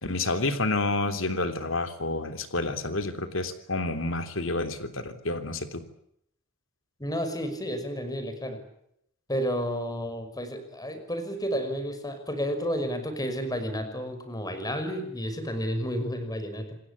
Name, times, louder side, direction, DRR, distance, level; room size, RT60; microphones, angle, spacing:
voice 1, 0.0-5.8, left 2 dB, 70° left, 8 dB, 3.4 m, -29 dB
voice 2, 7.0-8.6 9.3-16.8, equal, 20° left, 8 dB, 6.0 m, -31 dB
28.5 x 20.0 x 8.5 m, 0.74 s
head